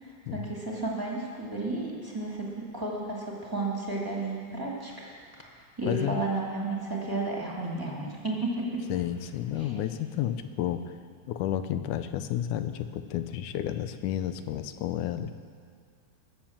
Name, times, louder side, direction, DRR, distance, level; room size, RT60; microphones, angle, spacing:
voice 1, 0.0-5.1 5.8-8.8 9.6-9.8, right 2 dB, 10° right, -4 dB, 1.8 m, -32 dB
voice 2, 5.9-6.2 8.9-10.9 11.3-15.3, left 11 dB, 85° left, 10 dB, 2.2 m, -31 dB
20.5 x 7.2 x 7.3 m, 2.2 s
omnidirectional pair, 3.5 m